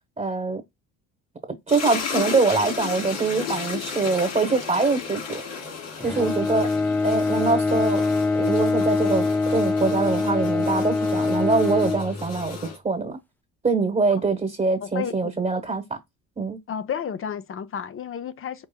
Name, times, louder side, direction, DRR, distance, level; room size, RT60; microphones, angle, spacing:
voice 1, 0.2-0.6 1.7-5.4 6.0-6.7 7.0-8.0 8.4-12.6 12.8-13.2 13.6-16.0 16.4-16.6, right 4 dB, 15° right, 1.2 m, -23 dB
sound 1, 1.7-12.8, left 6 dB, 80° left, 2.9 m, -34 dB
Bowed string instrument, 6.0-12.7, left 3 dB, 5° left, 0.3 m, -24 dB
voice 2, 14.8-15.3 16.7-18.7, left 8 dB, 30° left, 0.6 m, -31 dB
5.3 x 3.5 x 2.2 m
hypercardioid pair, 60°, 42 cm